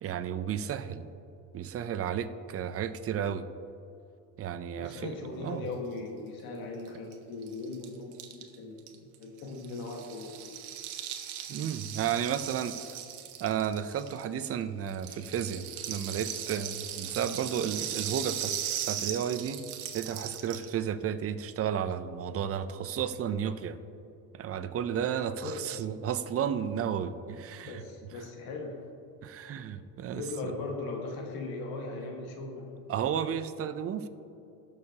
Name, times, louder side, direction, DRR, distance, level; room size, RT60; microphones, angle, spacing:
voice 1, 0.0-1.0 1.5-3.4 4.4-5.1 5.4-5.6 11.5-13.0 13.4-18.5 18.8-19.6 19.9-23.8 24.3-27.8 28.1-28.2 29.2-30.5 32.9-34.1, right 8 dB, 35° right, 11 dB, 0.6 m, -33 dB
voice 2, 4.7-10.6 25.4-25.9 27.6-28.8 30.1-32.9, left 3 dB, 65° left, 1 dB, 1.8 m, -39 dB
Rattle (instrument), 6.9-7.0 7.1-7.2 7.4-14.5 14.9-20.7, right 10 dB, 85° right, 1.2 m, -38 dB
19.0 x 6.6 x 2.9 m, 2.8 s
cardioid pair, 125°, 39 cm